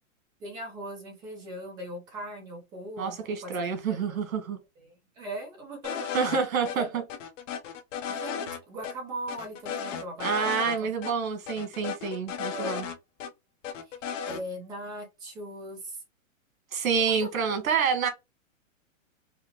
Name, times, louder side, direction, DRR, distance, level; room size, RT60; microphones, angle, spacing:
voice 1, 0.4-4.2 4.8-6.1 6.7-6.9 8.1-10.5 10.8-10.9 12.4-12.8 13.8-14.0 14.3-16.0 17.0-17.4, right 1 dB, 10° right, 0.5 m, -40 dB
voice 2, 3.0-4.6 6.1-7.0 10.2-12.9 16.7-18.1, right 6 dB, 85° right, 1.4 m, -28 dB
sound 1, 5.8-6.4 6.6-6.8 7.1-8.6 8.8-8.9 9.3-10.8 11.0-11.1 11.5-13.3 13.6-14.4, left 7 dB, 65° left, 0.8 m, -35 dB
4.9 x 2.1 x 2.9 m
hypercardioid pair, 160°, 40 cm